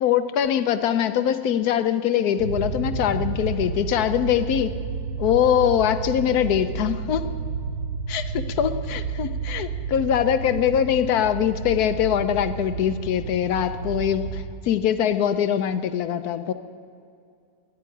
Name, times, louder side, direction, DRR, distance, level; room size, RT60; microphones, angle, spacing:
voice 1, 0.0-4.7 5.2-7.3 8.1-16.5, left 9 dB, 70° left, 11 dB, 1.1 m, -23 dB
sound 1, 2.4-14.4, right 4 dB, 85° right, 2.0 m, -31 dB
12.5 x 10.5 x 9.8 m, 2.3 s
omnidirectional pair, 1.8 m